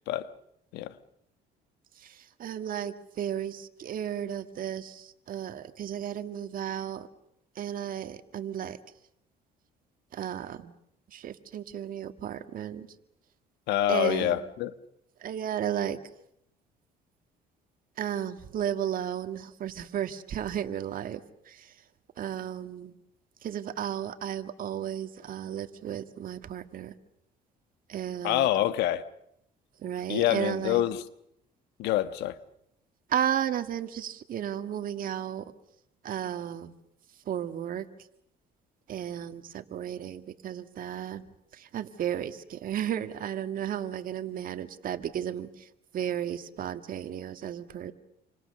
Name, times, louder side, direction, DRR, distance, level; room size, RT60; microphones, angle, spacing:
voice 1, 2.0-7.1 7.6-8.8 10.1-10.7 11.1-12.9 13.9-14.4 15.2-16.0 18.0-21.7 22.2-22.9 23.4-26.9 27.9-28.5 29.8-30.8 33.1-35.5 36.0-36.8 37.3-37.9 38.9-41.2 41.5-45.7 45.9-47.9, right 10 dB, 55° right, 1.9 m, -34 dB
voice 2, 13.7-14.7 28.2-29.0 30.1-31.0 31.8-32.4, left 13 dB, 90° left, 1.4 m, -26 dB
28.5 x 25.5 x 6.9 m
cardioid pair, 110°, 17 cm